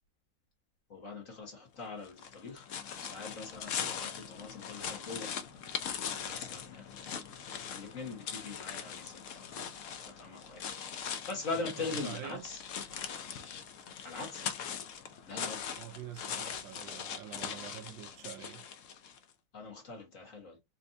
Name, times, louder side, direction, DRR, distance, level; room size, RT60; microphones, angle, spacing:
voice 1, 0.9-2.7 3.0-5.4 6.1-6.9 7.7-9.6 10.0-12.6 14.0-14.4 15.3-15.7 19.5-20.6, left 3 dB, 45° left, 1.7 m, -42 dB
sound 1, 2.0-19.2, left 8 dB, 70° left, 0.7 m, -41 dB
voice 2, 11.8-12.4 15.8-18.6, right 11 dB, 80° right, 1.3 m, -46 dB
4.4 x 2.6 x 2.7 m
omnidirectional pair, 2.1 m